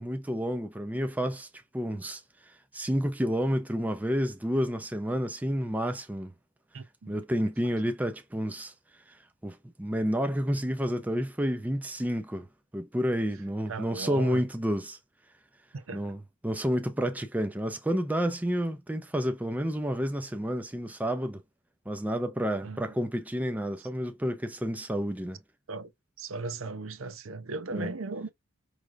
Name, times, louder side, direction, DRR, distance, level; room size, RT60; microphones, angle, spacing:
voice 1, 0.0-1.5 1.7-2.2 2.5-6.3 7.1-8.7 9.1-9.2 9.4-12.5 12.7-15.0 15.9-21.4 21.9-25.4 27.7-27.9, equal, 5° right, 0.4 m, -30 dB
voice 2, 6.7-7.1 13.7-14.4 15.7-16.1 22.6-22.9 23.8-23.9 25.7-25.9 26.2-28.3, right 3 dB, 70° right, 0.6 m, -37 dB
4.9 x 3.2 x 2.3 m
head